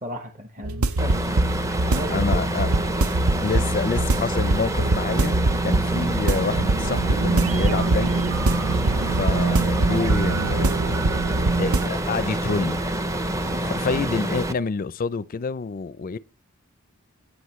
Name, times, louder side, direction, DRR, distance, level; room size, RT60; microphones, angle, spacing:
voice 1, 0.0-1.3 1.6-2.6 3.5-3.7 13.4-14.0, equal, 35° right, 0.9 m, -36 dB
sound 1, 0.6-11.9, right 2 dB, 80° right, 0.7 m, -23 dB
sound 2, 1.0-14.5, right 1 dB, 15° right, 0.5 m, -27 dB
voice 2, 2.1-2.7 3.4-5.3 5.6-8.4 9.1-10.7 11.6-12.9 13.6-16.2, left 4 dB, 40° left, 0.4 m, -27 dB
sound 3, 8.6-14.1, right 1 dB, 50° right, 6.4 m, -46 dB
17.5 x 6.2 x 3.1 m
head